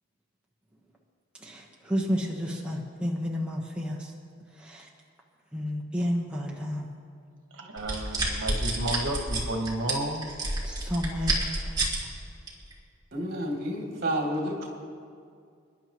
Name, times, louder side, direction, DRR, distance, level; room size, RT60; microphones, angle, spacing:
voice 1, 1.4-4.1 4.5-4.9 5.5-6.9 10.6-11.4 11.6-11.9, equal, 5° right, -3 dB, 1.1 m, -31 dB
voice 2, 7.5-10.3, right 1 dB, 80° right, 2 dB, 1.4 m, -32 dB
sound 1, 7.8-12.0 12.5-12.7, right 2 dB, 20° right, 2.4 m, -28 dB
voice 3, 13.1-14.7, equal, 50° right, -2 dB, 2.8 m, -30 dB
28.5 x 11.0 x 3.1 m, 2.2 s
head